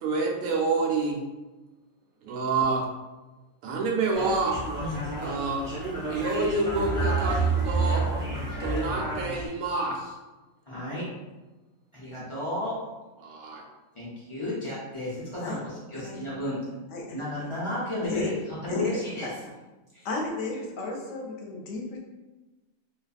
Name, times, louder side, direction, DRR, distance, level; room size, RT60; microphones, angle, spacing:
voice 1, 0.0-1.2 2.2-2.8 3.6-4.6 5.2-5.7 6.1-10.1 13.2-13.6, right 3 dB, 80° right, -1 dB, 1.0 m, -28 dB
sound 1, 4.1-9.5, right 3 dB, 20° right, 0.6 m, -29 dB
voice 2, 10.7-11.1 11.9-12.8 13.9-16.8 17.1-18.3 18.6-19.3 19.9-20.1, left 1 dB, 50° left, -8 dB, 0.3 m, -33 dB
voice 3, 16.9-17.3 18.1-18.3 18.7-19.3 20.0-22.0, left 3 dB, 65° left, -1 dB, 0.8 m, -33 dB
2.6 x 2.3 x 2.4 m, 1.1 s
omnidirectional pair, 1.5 m